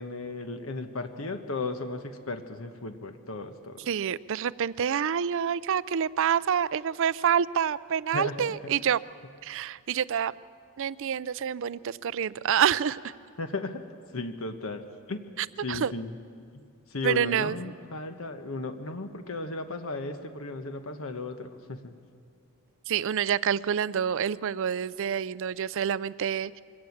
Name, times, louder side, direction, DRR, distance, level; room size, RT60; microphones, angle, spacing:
voice 1, 0.0-3.8 8.1-8.3 13.4-13.8 14.1-14.8 15.1-15.2 15.6-16.1 16.9-21.9, left 3 dB, 70° left, 8 dB, 1.2 m, -35 dB
voice 2, 3.9-9.0 9.4-10.3 10.8-13.1 15.4-15.9 17.0-17.7 22.9-26.6, right 8 dB, 65° right, 18 dB, 0.4 m, -27 dB
23.5 x 17.5 x 7.2 m, 2.4 s
head